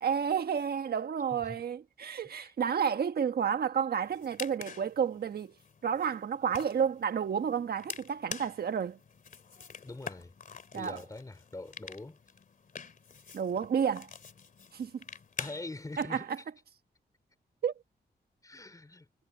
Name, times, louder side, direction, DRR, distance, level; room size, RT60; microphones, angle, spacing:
voice 1, 0.0-5.5 5.8-9.0 10.7-11.0 13.3-14.1 14.7-14.9 16.0-16.2 17.6-17.7, right 7 dB, 65° right, 1.4 m, -31 dB
voice 2, 1.3-1.6 2.2-2.5 9.8-10.4 10.7-12.2 15.4-16.4 18.4-19.1, left 2 dB, 20° left, 4.2 m, -44 dB
sound 1, 4.0-16.0, left 6 dB, 50° left, 2.5 m, -47 dB
wide cardioid pair, 125°, 17 cm